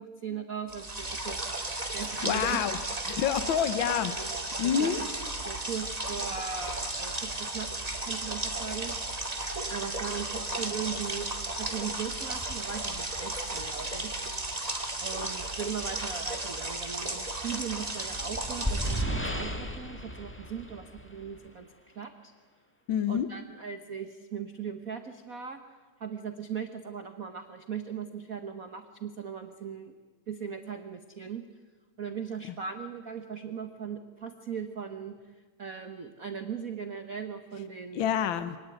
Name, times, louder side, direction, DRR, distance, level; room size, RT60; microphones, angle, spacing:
voice 1, 0.0-1.6 1.9-2.6 4.6-5.0 5.4-7.7 8.1-8.9 9.7-11.3 11.6-14.2 15.0-21.7 21.9-22.3 23.1-25.6 26.0-29.9 30.3-31.4 32.0-35.2 35.6-38.2, right 7 dB, 70° right, 7 dB, 0.8 m, -38 dB
sound 1, 0.7-19.0, right 2 dB, 15° right, 1.8 m, -34 dB
voice 2, 2.2-2.8 3.1-4.1 4.6-5.0 22.9-23.3 37.9-38.6, left 9 dB, 70° left, 11 dB, 1.2 m, -27 dB
sound 2, 18.2-21.5, equal, 10° left, 0.6 m, -34 dB
25.0 x 18.5 x 9.3 m, 1.4 s
omnidirectional pair, 3.4 m